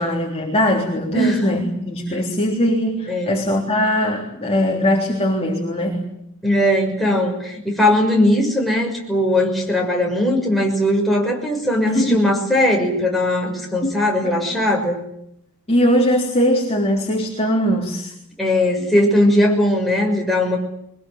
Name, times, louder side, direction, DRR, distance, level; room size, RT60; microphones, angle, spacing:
voice 1, 0.0-6.1 11.9-12.2 13.8-13.9 14.2-14.4 15.7-18.1, equal, 30° left, 0 dB, 3.5 m, -20 dB
voice 2, 1.1-1.6 2.3-2.4 3.1-3.5 6.4-15.0 18.4-20.6, left 1 dB, ahead, -1 dB, 6.3 m, -19 dB
23.0 x 20.5 x 9.3 m, 0.75 s
head